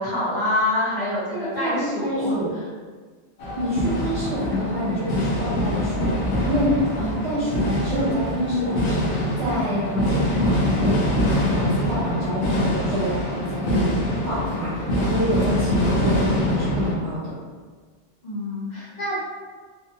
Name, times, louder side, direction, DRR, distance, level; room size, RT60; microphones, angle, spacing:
voice 1, 0.0-2.3 18.2-19.3, left 1 dB, 45° left, -8 dB, 0.9 m, -26 dB
voice 2, 1.3-2.5 3.6-6.1 6.4-11.0 11.4-13.9 14.3-17.3, equal, 70° right, -10 dB, 0.9 m, -27 dB
sound 1, 3.4-17.0, equal, 75° left, 0.9 m, -24 dB
2.5 x 2.1 x 2.7 m, 1.5 s
omnidirectional pair, 1.2 m